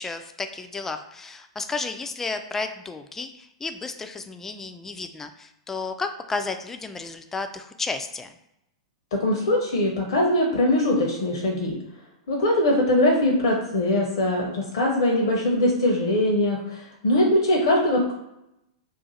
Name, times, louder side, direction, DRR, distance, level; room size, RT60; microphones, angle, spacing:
voice 1, 0.0-8.3, left 4 dB, 15° left, 7 dB, 0.3 m, -32 dB
voice 2, 9.1-11.7 12.3-18.1, left 1 dB, 60° left, -1 dB, 0.6 m, -22 dB
2.5 x 2.4 x 4.1 m, 0.86 s
hypercardioid pair, 100°, 3 cm